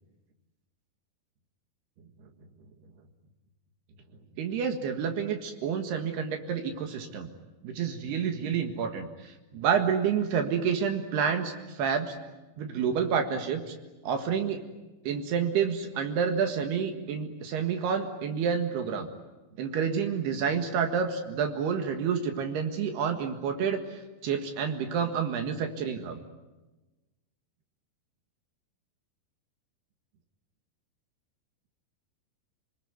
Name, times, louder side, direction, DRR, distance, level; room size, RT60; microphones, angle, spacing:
voice 1, 4.4-7.3 7.6-12.2 12.6-13.7 14.0-14.6 15.1-19.1 19.6-26.2, right 7 dB, 75° right, 5 dB, 3.7 m, -29 dB
29.0 x 20.5 x 9.5 m, 1.1 s
omnidirectional pair, 4.8 m